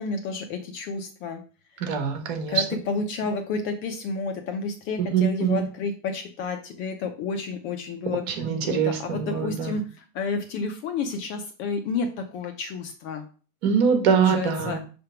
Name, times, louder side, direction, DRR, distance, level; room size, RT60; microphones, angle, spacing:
voice 1, 0.0-1.4 2.5-8.2 8.6-13.3 14.1-14.8, left 4 dB, 30° left, 5 dB, 0.5 m, -30 dB
voice 2, 1.8-2.6 5.0-5.6 8.3-9.8 13.6-14.8, right 6 dB, 50° right, 5 dB, 1.6 m, -23 dB
5.8 x 3.4 x 5.7 m, 0.39 s
supercardioid pair, 170°, 40 cm